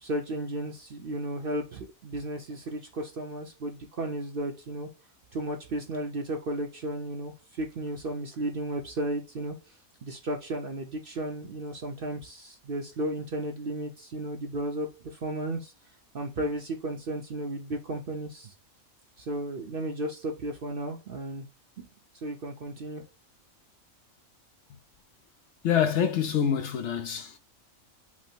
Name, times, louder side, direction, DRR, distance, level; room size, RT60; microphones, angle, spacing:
voice 1, 0.0-4.9 5.3-9.6 10.0-15.7 16.1-18.5 19.2-21.5 21.8-21.9 22.2-23.0, right 1 dB, 50° right, 0.8 m, -34 dB
voice 2, 25.6-27.4, left 8 dB, 65° left, 0.8 m, -26 dB
5.8 x 2.0 x 4.4 m
omnidirectional pair, 1.5 m